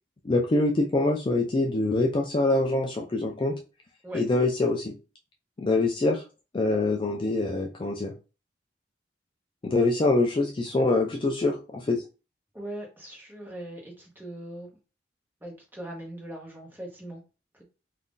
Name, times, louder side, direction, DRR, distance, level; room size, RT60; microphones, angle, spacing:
voice 1, 0.3-3.6 4.1-5.0 5.6-6.2 6.5-8.1 9.6-12.0, left 2 dB, 25° left, 2 dB, 0.3 m, -24 dB
voice 2, 12.5-14.7 15.4-17.2 17.5-17.6, right 1 dB, 10° right, -2 dB, 1.0 m, -40 dB
2.6 x 2.3 x 3.7 m, 0.32 s
head